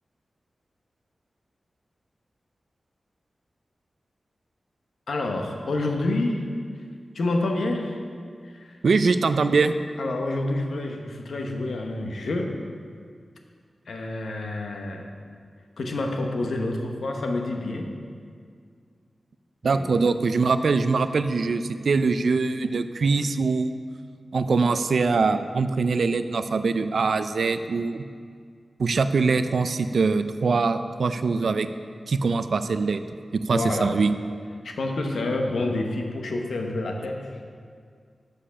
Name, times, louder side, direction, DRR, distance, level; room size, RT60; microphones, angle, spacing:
voice 1, 5.1-6.4 7.1-8.0 8.4-8.8 10.0-12.5 13.9-15.1 15.8-17.9 19.7-20.0 33.5-33.9 34.6-37.3, left 2 dB, 90° left, 2 dB, 0.9 m, -28 dB
voice 2, 8.8-9.7 19.6-23.7 24.3-28.0 28.8-31.7 32.1-33.0 33.3-34.1, right 4 dB, 80° right, 10 dB, 0.4 m, -23 dB
7.5 x 6.6 x 5.7 m, 2.1 s
wide cardioid pair, 105°, 0 cm